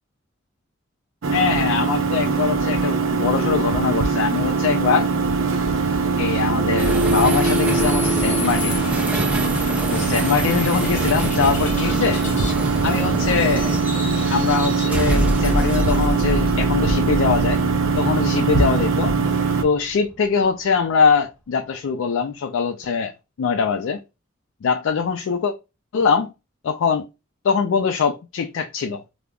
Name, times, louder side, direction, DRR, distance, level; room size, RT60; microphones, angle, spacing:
sound 1, 1.2-19.6, right 4 dB, 80° right, 0.5 m, -21 dB
voice 1, 1.3-5.1 6.2-8.8 9.1-9.3 9.9-12.2 12.8-13.7 14.3-17.6 18.0-19.2 19.6-23.1 23.4-24.0 24.6-25.5 25.9-26.3 26.6-27.1 27.4-29.0, left 5 dB, 85° left, 0.3 m, -22 dB
sound 2, 6.8-20.1, equal, 5° right, 0.3 m, -27 dB
sound 3, 7.1-12.5, left 3 dB, 35° left, 0.6 m, -37 dB
5.0 x 2.0 x 2.3 m
head